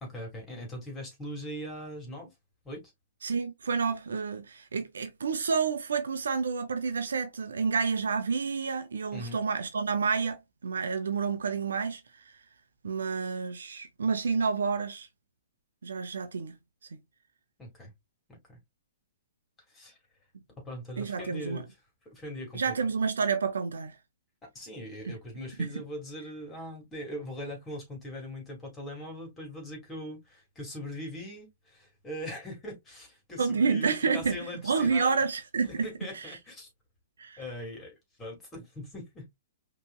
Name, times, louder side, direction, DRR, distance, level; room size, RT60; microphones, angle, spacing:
voice 1, 0.0-2.3 2.6-2.8 9.1-9.4 17.6-17.9 18.3-18.6 19.7-20.0 20.6-21.7 22.0-22.7 24.4-35.2 35.7-36.7 37.4-39.4, equal, 15° left, 3.0 m, -41 dB
voice 2, 3.2-12.4 12.8-15.1 15.8-16.6 16.9-17.0 21.0-21.6 22.5-24.0 25.1-25.2 25.6-25.7 33.4-35.9 36.1-36.3 37.2-37.4, right 5 dB, 70° right, 0.8 m, -29 dB
5.3 x 3.3 x 2.4 m
figure-of-eight pair, 115°, 0 cm